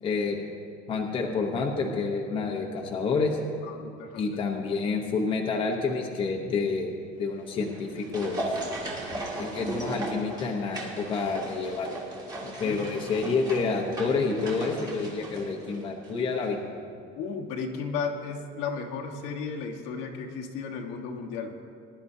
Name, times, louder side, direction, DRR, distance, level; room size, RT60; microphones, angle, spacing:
voice 1, 0.0-0.4 0.9-3.4 4.2-6.9 7.2-8.6 9.4-11.9 12.6-16.6, left 4 dB, 25° left, 0 dB, 0.9 m, -28 dB
voice 2, 3.6-4.4 10.3-10.4 12.4-12.8 17.1-21.5, left 5 dB, 75° left, 1 dB, 1.4 m, -34 dB
sound 1, 7.6-16.2 16.4-16.5, right 2 dB, 20° right, 1.6 m, -36 dB
20.0 x 11.0 x 2.7 m, 2.5 s
cardioid pair, 180°, 20 cm